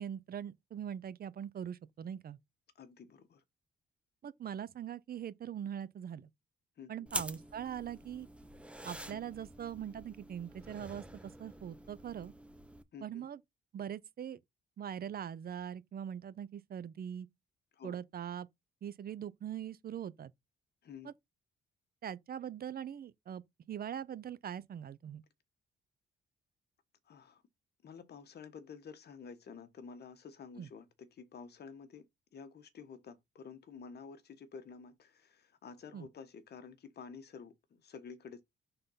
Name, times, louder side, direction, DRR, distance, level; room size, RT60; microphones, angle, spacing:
voice 1, 0.0-2.4 4.2-6.3 6.9-8.3 8.8-12.3 13.0-13.4 13.7-14.4 14.8-17.3 17.8-18.5 18.8-20.3 21.0-21.1 22.0-23.4 23.7-25.2 30.6-30.7 35.9-36.1, right 9 dB, 50° right, 0.7 m, -42 dB
voice 2, 2.8-3.4 6.8-7.1 9.1-9.2 12.9-13.3 17.7-18.0 20.8-21.1 27.1-27.4 27.8-38.4, left 6 dB, 55° left, 1.3 m, -51 dB
sound 1, 7.1-12.8, right 1 dB, 5° right, 1.0 m, -46 dB
5.5 x 3.9 x 5.6 m
cardioid pair, 90°, 20 cm